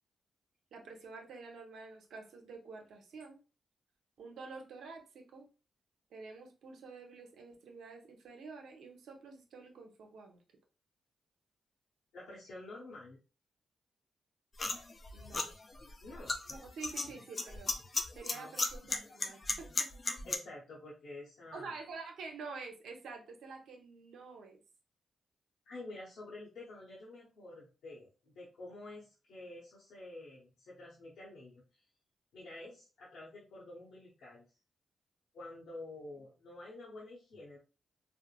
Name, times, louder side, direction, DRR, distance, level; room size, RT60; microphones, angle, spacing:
voice 1, 0.7-3.4 4.2-5.5 6.1-10.4 15.1-15.4 16.5-17.7 18.2-19.9 21.5-24.6, right 4 dB, 80° right, 3 dB, 0.6 m, -48 dB
voice 2, 12.1-13.2 16.0-16.4 18.3-18.5 20.3-21.8 25.7-31.8 32.3-34.5 35.3-37.6, left 2 dB, 80° left, -7 dB, 0.9 m, -49 dB
sound 1, 14.6-20.4, left 3 dB, 45° left, 0.5 m, -36 dB
3.5 x 2.0 x 2.3 m, 0.33 s
supercardioid pair, 50°, 0 cm